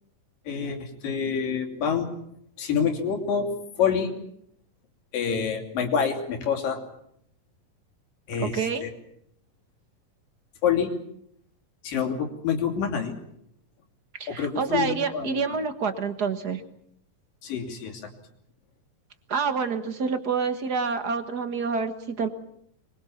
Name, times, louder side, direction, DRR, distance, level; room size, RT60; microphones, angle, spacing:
voice 1, 0.5-2.1 2.6-3.5 3.8-4.1 5.1-6.8 8.3-8.9 10.6-10.9 11.8-13.1 14.3-15.4 17.4-18.1, left 7 dB, 75° left, 4 dB, 4.6 m, -27 dB
voice 2, 8.4-8.8 14.2-16.6 19.3-22.3, right 5 dB, 50° right, 8 dB, 1.2 m, -27 dB
24.5 x 22.5 x 7.3 m, 0.72 s
omnidirectional pair, 3.9 m